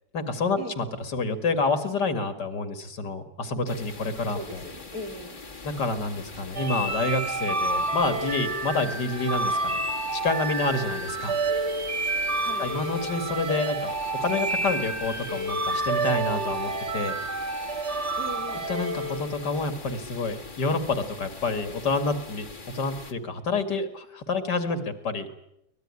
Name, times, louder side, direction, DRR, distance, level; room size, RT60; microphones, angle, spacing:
voice 1, 0.1-0.9 1.1-4.6 5.6-9.8 10.1-11.4 12.6-17.2 18.7-22.5 22.7-25.3, left 3 dB, 70° left, 9 dB, 2.7 m, -28 dB
sound 1, 3.7-23.1, left 4 dB, 30° left, 1.7 m, -43 dB
voice 2, 4.3-5.4 12.4-12.7 18.2-18.7, equal, 60° right, 4 dB, 3.7 m, -38 dB
sound 2, 6.5-19.7, right 2 dB, 40° right, 2.1 m, -29 dB
23.5 x 20.0 x 9.8 m, 0.79 s
omnidirectional pair, 1.9 m